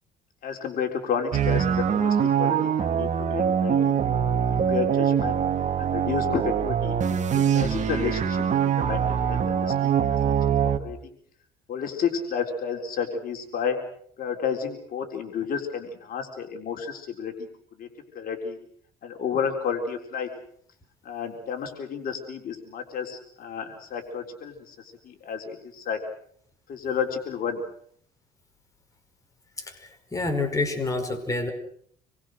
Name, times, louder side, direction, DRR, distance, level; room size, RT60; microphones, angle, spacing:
voice 1, 0.4-4.0 4.3-5.4 5.8-7.0 7.3-11.1 11.7-13.8 14.2-17.5 17.8-17.9 18.1-18.6 19.0-20.3 21.0-26.0 26.7-27.6, left 7 dB, 60° left, 4 dB, 4.0 m, -31 dB
sound 1, 1.3-10.8, right 8 dB, 45° right, 2.6 m, -23 dB
voice 2, 30.1-31.5, left 3 dB, 20° left, 4 dB, 5.2 m, -27 dB
27.5 x 23.0 x 6.5 m, 0.64 s
cardioid pair, 110°, 17 cm